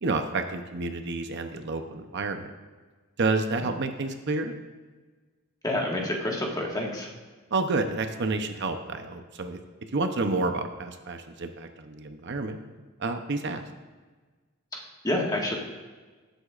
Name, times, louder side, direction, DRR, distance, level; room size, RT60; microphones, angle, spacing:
voice 1, 0.0-2.5 3.2-4.5 7.5-9.6 9.9-12.6 13.0-13.6, right 3 dB, 60° right, 6 dB, 0.8 m, -29 dB
voice 2, 5.6-7.1 14.7-15.5, left 1 dB, 20° left, -1 dB, 1.7 m, -29 dB
18.0 x 8.0 x 2.5 m, 1.3 s
head